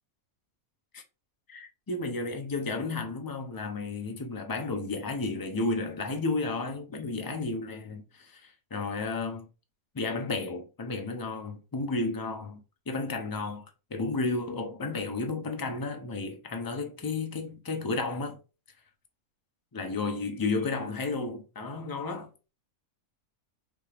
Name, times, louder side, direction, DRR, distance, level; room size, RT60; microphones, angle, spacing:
voice 1, 1.5-9.5 9.9-12.6 12.9-13.7 13.9-18.4 19.7-22.3, left 3 dB, 30° left, 0.4 m, -32 dB
5.3 x 2.9 x 3.3 m
omnidirectional pair, 1.5 m